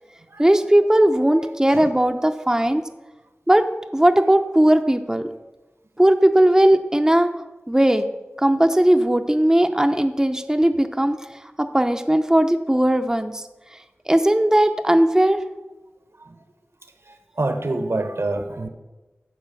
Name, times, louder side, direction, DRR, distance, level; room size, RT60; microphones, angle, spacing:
voice 1, 0.4-2.8 3.5-3.7 3.9-5.3 6.0-7.3 7.7-8.1 8.4-11.2 11.6-13.4 14.1-15.4, right 1 dB, 10° right, 6 dB, 0.7 m, -18 dB
voice 2, 17.1-18.7, right 2 dB, 65° right, 7 dB, 1.1 m, -26 dB
11.0 x 4.9 x 8.2 m, 1.1 s
wide cardioid pair, 45°, 5 cm